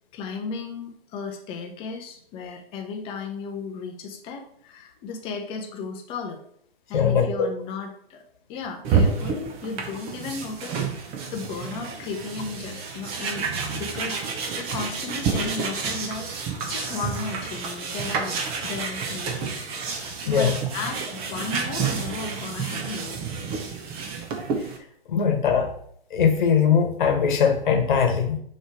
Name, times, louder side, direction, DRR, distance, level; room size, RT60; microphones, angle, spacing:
voice 1, 0.1-6.4 6.9-8.2 8.5-10.9 11.3-18.4 18.6-19.6 20.2-23.2, left 4 dB, 15° left, 3 dB, 0.7 m, -35 dB
voice 2, 6.9-7.5 20.3-20.5 25.1-25.7 26.1-28.4, left 7 dB, 50° left, 4 dB, 1.3 m, -21 dB
sound 1, 8.8-24.8, right 5 dB, 20° right, 0.7 m, -29 dB
6.1 x 3.2 x 5.1 m, 0.66 s
figure-of-eight pair, 120°, 32 cm